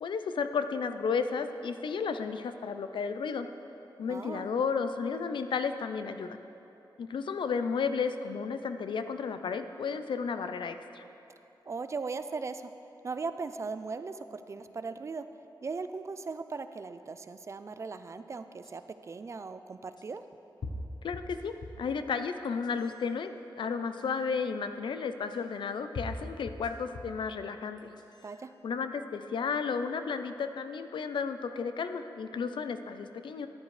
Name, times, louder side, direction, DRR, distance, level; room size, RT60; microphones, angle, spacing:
voice 1, 0.0-3.5 4.0-6.4 7.0-11.0 21.0-23.3 23.6-27.9 28.6-33.5, left 5 dB, 80° left, 9 dB, 0.5 m, -33 dB
voice 2, 4.1-4.5 11.7-12.7 13.0-15.2 15.6-20.2 28.2-28.5, right 4 dB, 35° right, 10 dB, 0.3 m, -38 dB
sound 1, 18.6-18.7 20.0-20.1 20.6-21.9 22.4-23.0 24.0-24.1 25.3-25.4 25.9-27.3 27.8-28.3, left 2 dB, 60° left, 0.8 m, -41 dB
13.5 x 10.5 x 3.2 m, 2.9 s
wide cardioid pair, 170°, 8 cm